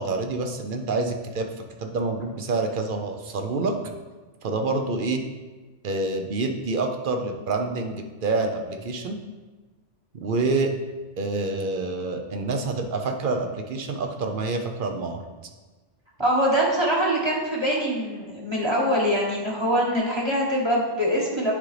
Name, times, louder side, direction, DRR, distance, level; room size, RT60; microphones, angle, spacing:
voice 1, 0.0-1.5 1.8-3.7 4.4-5.2 5.8-9.2 10.1-10.7 11.2-15.2, right 3 dB, 55° right, 4 dB, 0.7 m, -27 dB
voice 2, 16.2-21.5, equal, 25° right, -4 dB, 1.2 m, -23 dB
9.5 x 3.8 x 3.3 m, 1.2 s
omnidirectional pair, 1.2 m